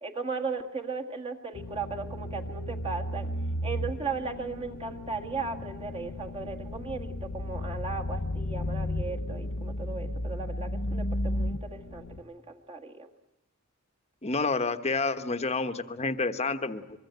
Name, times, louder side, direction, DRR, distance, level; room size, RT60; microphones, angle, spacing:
voice 1, 0.0-3.3 3.6-13.1, right 4 dB, 25° right, 2 dB, 1.8 m, -36 dB
sound 1, 1.5-12.2, left 1 dB, 75° left, 1.1 m, -34 dB
voice 2, 14.2-17.0, left 3 dB, 30° left, 10 dB, 1.1 m, -29 dB
24.5 x 23.0 x 8.0 m, 1.0 s
head